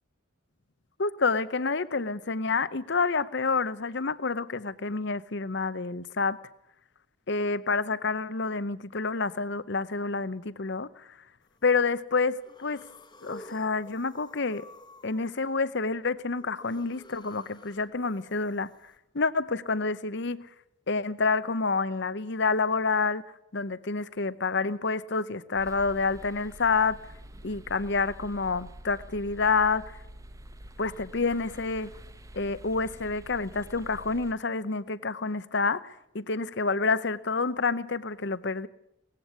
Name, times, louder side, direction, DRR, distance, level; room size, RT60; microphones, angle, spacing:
voice 1, 1.0-6.4 7.3-11.1 11.6-12.8 13.2-14.7 15.0-18.7 19.1-20.5 20.9-23.2 23.5-27.0 27.4-30.0 30.8-31.9 32.3-38.7, left 4 dB, 55° left, 0.8 m, -28 dB
sound 1, 11.4-11.8 12.3-19.0, left 1 dB, 20° left, 1.4 m, -52 dB
sound 2, 25.6-34.3, right 1 dB, 15° right, 0.9 m, -47 dB
19.0 x 15.5 x 9.5 m
head